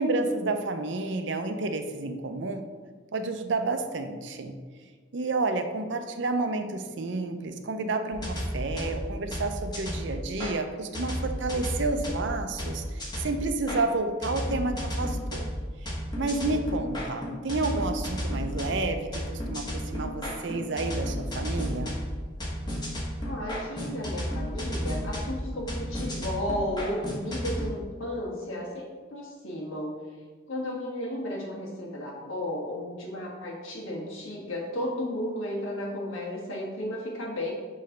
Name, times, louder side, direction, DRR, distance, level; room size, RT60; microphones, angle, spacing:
voice 1, 0.0-2.6 3.1-4.6 5.1-15.5 15.8-22.0, right 3 dB, 65° right, 7 dB, 0.5 m, -30 dB
sound 1, 8.1-10.5 10.9-13.8 14.2-27.7, equal, 20° left, 1.2 m, -33 dB
voice 2, 23.2-30.0 30.5-37.5, left 1 dB, 90° left, -2 dB, 1.5 m, -34 dB
6.5 x 3.2 x 5.2 m, 1.5 s
head